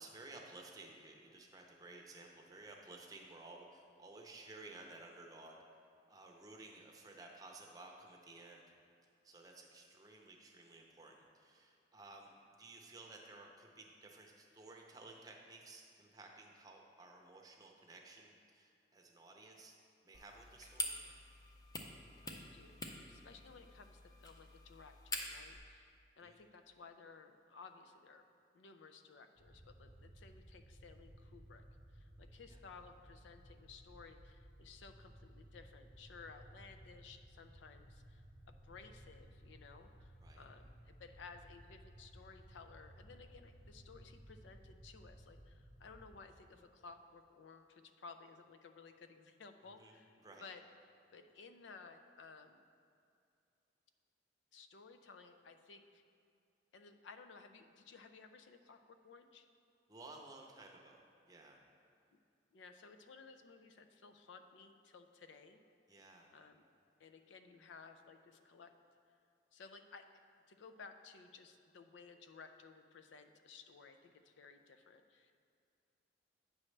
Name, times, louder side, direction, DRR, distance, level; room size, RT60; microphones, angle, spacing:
voice 1, 0.0-5.6 6.1-8.6 9.0-19.7 20.0-21.0 26.2-26.4 32.5-32.6 40.2-40.4 49.6-50.4 59.9-61.6 65.9-66.3, right 2 dB, 20° right, 1 dB, 0.6 m, -55 dB
sound 1, 20.1-25.6, left 2 dB, 20° left, 0.5 m, -46 dB
voice 2, 22.2-22.8 23.1-25.9 26.2-28.3 28.5-31.6 31.9-50.2 50.4-50.6 51.1-52.6 54.5-56.0 56.7-59.5 62.5-65.6 66.3-66.6 67.0-68.7 69.5-70.2 70.5-75.3, left 4 dB, 85° left, 7 dB, 0.4 m, -57 dB
sound 2, 29.3-46.1, right 1 dB, 50° left, 1.6 m, -59 dB
8.6 x 6.2 x 3.2 m, 2.5 s
head